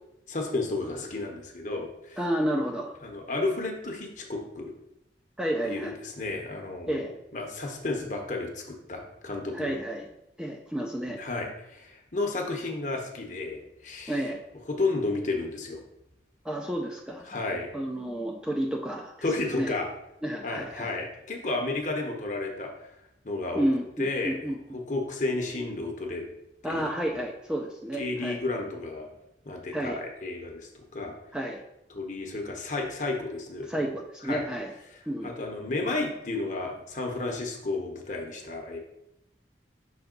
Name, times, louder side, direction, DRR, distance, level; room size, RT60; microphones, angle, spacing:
voice 1, 0.3-2.2 3.0-4.7 5.6-9.7 11.1-14.2 14.7-15.8 17.3-17.7 19.2-19.9 20.4-22.9 23.2-23.7 24.0-24.4 24.7-26.2 26.6-26.9 28.0-29.1 29.4-31.2 31.9-33.7 34.2-34.4 35.2-38.8, left 2 dB, 40° left, 2 dB, 1.0 m, -32 dB
voice 2, 2.2-2.9 5.4-5.9 6.9-7.1 9.5-10.1 10.4-11.2 14.1-14.4 16.4-17.2 17.7-19.7 20.2-20.9 23.5-24.8 26.6-28.4 29.7-30.0 31.3-31.6 33.6-34.7 35.1-35.3, right 1 dB, 5° right, -1 dB, 0.4 m, -31 dB
5.8 x 3.5 x 5.1 m, 0.84 s
head